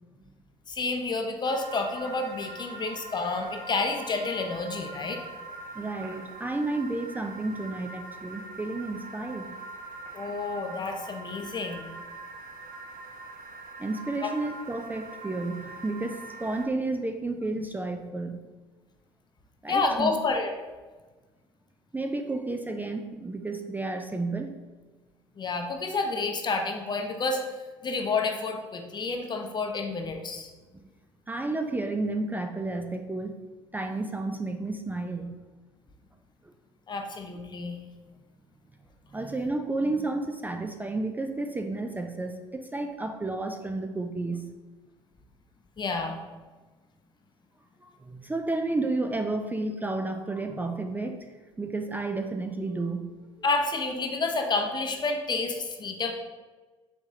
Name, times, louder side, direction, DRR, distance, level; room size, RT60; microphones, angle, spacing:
voice 1, 0.7-5.2 10.1-11.9 14.2-14.3 19.7-20.5 25.4-27.4 27.8-30.5 36.9-37.8 45.8-46.2 53.4-56.1, left 3 dB, 30° left, 3 dB, 0.7 m, -29 dB
sound 1, 1.5-16.7, right 3 dB, 70° right, 0.5 m, -43 dB
voice 2, 5.7-9.5 13.8-18.4 19.6-20.1 21.9-24.6 30.7-30.8 31.3-33.4 33.7-35.4 39.1-44.5 47.8-51.3 51.6-53.1, right 2 dB, 15° right, 6 dB, 0.3 m, -31 dB
4.7 x 3.5 x 2.8 m, 1.3 s
hypercardioid pair, 60°, 14 cm